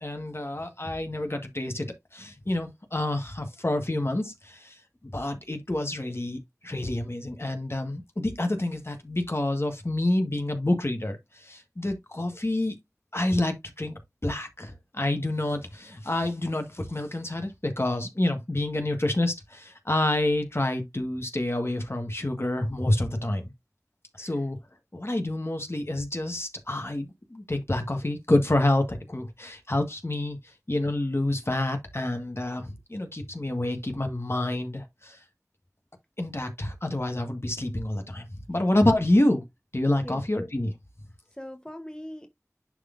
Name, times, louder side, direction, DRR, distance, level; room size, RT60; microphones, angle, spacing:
voice 1, 0.0-1.9 2.1-4.7 5.1-6.4 6.6-11.2 11.5-12.7 13.1-23.4 24.2-24.6 24.9-30.4 30.7-35.1 36.2-39.4 39.7-40.7, left 1 dB, 45° left, 1.5 m, -28 dB
voice 2, 41.4-42.3, equal, 15° left, 1.0 m, -41 dB
11.0 x 3.9 x 2.6 m
wide cardioid pair, 40°, 6 cm